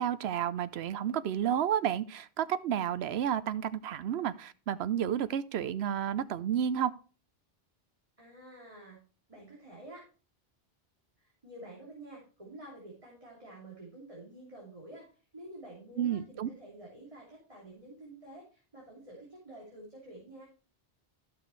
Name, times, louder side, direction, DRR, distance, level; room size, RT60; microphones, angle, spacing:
voice 1, 0.0-6.9 16.0-16.5, right 9 dB, 90° right, 0.9 m, -31 dB
voice 2, 8.2-9.0 9.3-10.0 11.2-15.1 15.3-20.4, right 1 dB, 35° right, 3.0 m, -49 dB
13.5 x 6.0 x 3.2 m
omnidirectional pair, 1.0 m